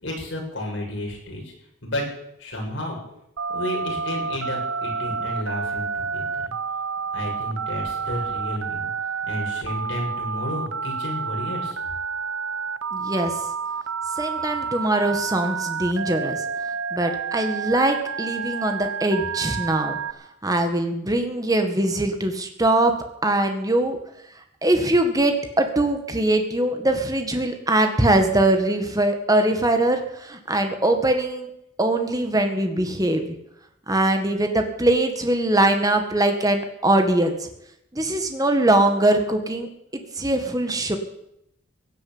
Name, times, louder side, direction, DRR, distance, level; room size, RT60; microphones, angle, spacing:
voice 1, 0.0-1.5 1.8-2.0 2.4-3.0 3.5-6.5 7.1-8.9 9.2-11.8, left 1 dB, 65° left, -1 dB, 6.8 m, -31 dB
Telephone, 3.4-20.1, right 5 dB, 90° right, 1.0 m, -29 dB
voice 2, 12.9-13.3 14.2-16.4 16.9-20.0 20.4-22.9 23.2-24.0 24.6-31.5 31.8-33.3 33.9-37.5 37.9-39.7 40.2-41.0, right 1 dB, 20° right, 5 dB, 1.7 m, -22 dB
16.5 x 9.5 x 8.8 m, 0.79 s
head